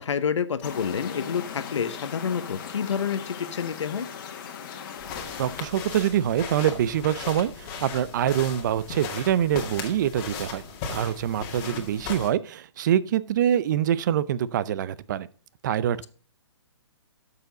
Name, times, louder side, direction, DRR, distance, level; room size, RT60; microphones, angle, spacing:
voice 1, 0.0-4.1 11.7-11.8, left 7 dB, 80° left, 1.0 m, -28 dB
sound 1, 0.6-5.7, left 7 dB, 45° left, 1.7 m, -38 dB
sound 2, 5.0-12.3, left 6 dB, 25° left, 1.9 m, -37 dB
voice 2, 5.4-15.3 15.6-16.1, right 10 dB, 40° right, 0.5 m, -25 dB
11.5 x 6.9 x 3.9 m
hypercardioid pair, 155°, 15 cm